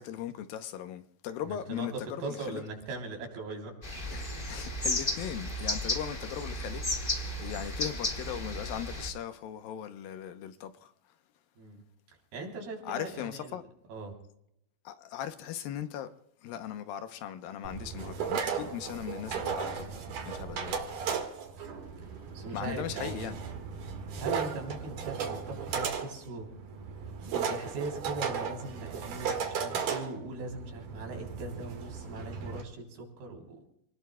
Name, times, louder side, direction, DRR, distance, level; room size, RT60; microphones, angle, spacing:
voice 1, 0.0-2.6 4.1-10.9 12.8-13.6 14.8-16.1 16.4-20.0 20.3-20.9 22.5-23.4, left 10 dB, 80° left, 2.5 m, -39 dB
voice 2, 1.4-3.8 11.6-11.8 12.3-13.6 13.9-14.1 22.3-23.4 24.2-26.5 27.2-33.6, right 3 dB, 85° right, 5.4 m, -40 dB
sound 1, 3.8-9.1, left 1 dB, 25° left, 1.1 m, -34 dB
sound 2, 17.6-32.6, right 6 dB, 60° right, 3.2 m, -36 dB
28.5 x 19.5 x 2.3 m
omnidirectional pair, 4.4 m